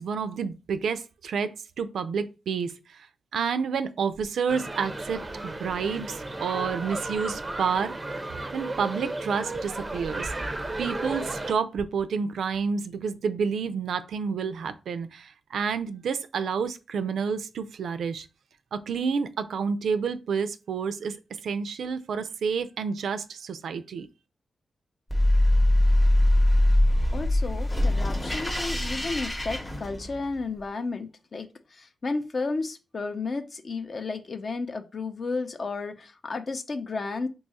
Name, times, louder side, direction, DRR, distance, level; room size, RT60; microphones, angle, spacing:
voice 1, 0.0-3.0 3.3-7.9 8.5-10.3 10.8-18.3 18.7-21.2 21.4-24.1, right 6 dB, 85° right, 0.3 m, -29 dB
sound 1, 4.5-11.5, right 2 dB, 25° right, 0.4 m, -34 dB
sound 2, 25.1-30.4, left 1 dB, 15° left, 0.7 m, -22 dB
voice 2, 27.1-37.3, left 3 dB, 50° left, 0.5 m, -33 dB
2.8 x 2.3 x 4.0 m
cardioid pair, 90°, 0 cm